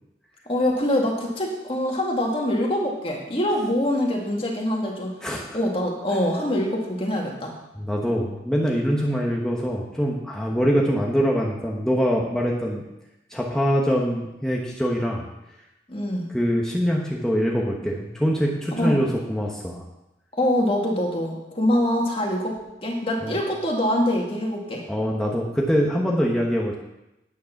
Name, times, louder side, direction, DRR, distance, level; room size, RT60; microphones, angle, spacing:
voice 1, 0.5-5.2 5.5-7.6 15.9-16.3 18.7-19.0 20.3-22.5 22.8-24.8, left 1 dB, 30° left, 0 dB, 2.1 m, -24 dB
voice 2, 5.2-5.6 7.7-12.8 13.3-15.2 16.3-19.8 23.2-23.4 24.9-26.8, equal, 5° left, -3 dB, 1.1 m, -24 dB
9.7 x 9.3 x 5.9 m, 0.92 s
head